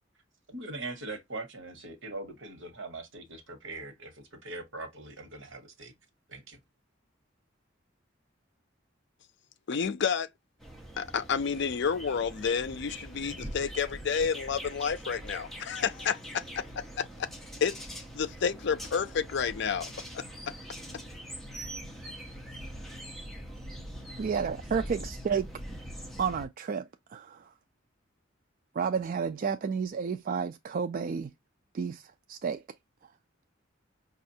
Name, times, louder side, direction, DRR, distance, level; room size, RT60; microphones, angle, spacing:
voice 1, 0.5-5.9 6.3-6.6, right 2 dB, 80° right, 1.1 m, -41 dB
voice 2, 9.7-10.3 11.0-16.6 17.0-17.3 17.6-17.8 18.1-20.2, left 6 dB, 65° left, 0.5 m, -30 dB
sound 1, 10.6-26.5, equal, ahead, 0.9 m, -43 dB
voice 3, 24.2-25.5 26.2-27.5 28.8-31.3 31.7-32.0 32.3-32.6, right 6 dB, 45° right, 0.3 m, -31 dB
5.3 x 2.4 x 2.7 m
head